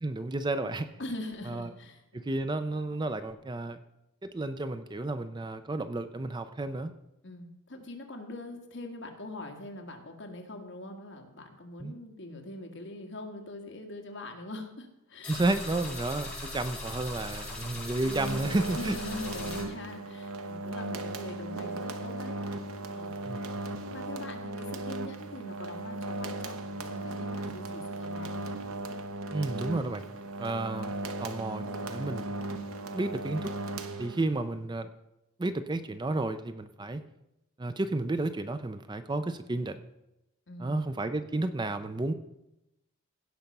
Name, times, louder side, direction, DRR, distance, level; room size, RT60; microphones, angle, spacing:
voice 1, 0.0-0.9 1.5-1.7 2.2-3.8 4.2-6.9 11.8-11.9 15.3-19.0 23.2-23.4 29.3-30.0 30.4-32.3 32.9-33.5 34.0-34.9 35.4-37.0 37.6-39.8 40.6-42.1, right 2 dB, 20° right, 10 dB, 0.4 m, -32 dB
voice 2, 1.0-2.3 7.2-15.4 18.7-22.4 22.9-23.3 23.7-28.5 40.5-40.8, left 2 dB, 55° left, 3 dB, 1.7 m, -43 dB
sound 1, 15.2-19.6, left 2 dB, 10° left, 4.7 m, -40 dB
sound 2, 18.0-34.5, right 2 dB, 75° right, 0.9 m, -37 dB
16.5 x 5.7 x 5.3 m, 0.89 s
head